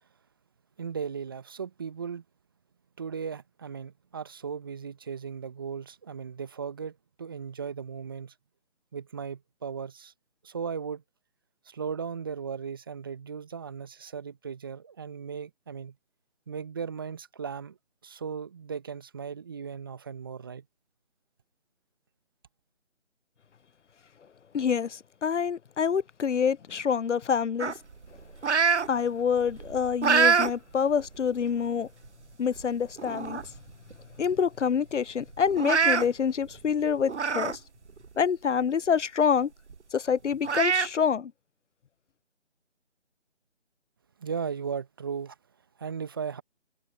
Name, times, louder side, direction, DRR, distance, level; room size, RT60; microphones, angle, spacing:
voice 1, 0.8-2.2 3.0-8.3 8.9-10.1 10.4-11.0 11.7-15.9 16.5-17.8 18.0-20.6 44.2-45.3 45.8-46.4, right 6 dB, 20° right, 1.2 m, -37 dB
voice 2, 24.5-27.7 28.9-31.9 32.4-33.4 34.2-37.6 38.2-39.5 39.9-41.3, left 7 dB, 75° left, 0.6 m, -26 dB
sound 1, 27.6-28.9 29.3-30.5 31.0-31.2 32.0-32.1 32.6-32.7 33.0-33.6 33.9-34.0 34.3-34.4 35.5-36.0 37.1-37.6 38.0-38.1 39.7-39.8 40.4-40.9, right 5 dB, 70° right, 0.9 m, -25 dB
figure-of-eight pair, 160°, 36 cm